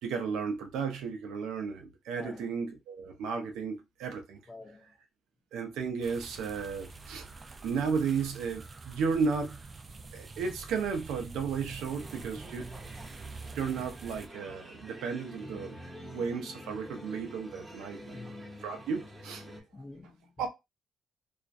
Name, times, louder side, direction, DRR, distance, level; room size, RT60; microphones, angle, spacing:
voice 1, 0.0-4.4 5.5-7.3 7.6-9.6 10.1-12.7 13.5-15.8 16.0-18.2 18.6-19.5 20.4-20.5, right 5 dB, 85° right, 0.6 m, -34 dB
voice 2, 2.1-2.6 4.5-4.9 18.0-18.6 19.5-20.5, left 3 dB, 30° left, 0.6 m, -49 dB
sound 1, 6.0-14.3, right 3 dB, 35° right, 0.4 m, -46 dB
sound 2, 12.0-19.6, equal, 15° right, 0.8 m, -47 dB
2.4 x 2.2 x 2.5 m
cardioid pair, 90°, 0 cm